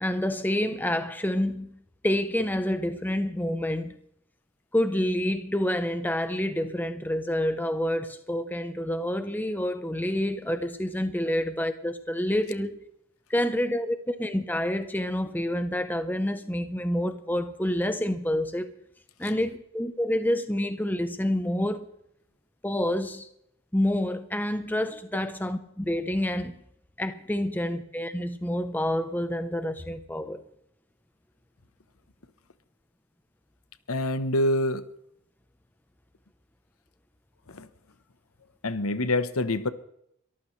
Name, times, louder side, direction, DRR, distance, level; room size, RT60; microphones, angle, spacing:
voice 1, 0.0-1.7 2.0-4.0 4.7-12.8 13.3-18.7 19.2-21.9 22.6-23.3 23.7-26.6 27.0-30.4, left 1 dB, 10° left, 0.8 m, -28 dB
voice 2, 33.9-34.8 37.5-37.7 38.6-39.7, left 1 dB, 80° left, 1.0 m, -26 dB
23.0 x 14.0 x 3.3 m
head